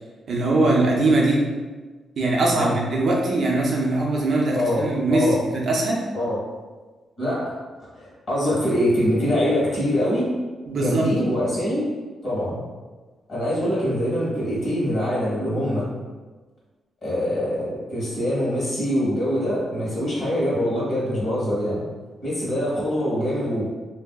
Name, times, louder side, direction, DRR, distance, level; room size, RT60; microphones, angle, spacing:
voice 1, 0.3-1.5 2.2-6.0 10.7-11.1, right 2 dB, 50° right, -2 dB, 0.5 m, -21 dB
voice 2, 4.5-4.8 5.1-5.4 6.1-6.4 7.2-7.5 8.0-10.3 10.7-11.9 12.2-12.6 13.3-15.9 17.0-21.8 22.2-23.6, equal, 40° left, -7 dB, 1.3 m, -24 dB
3.3 x 2.6 x 2.3 m, 1.3 s
wide cardioid pair, 160°, 0 cm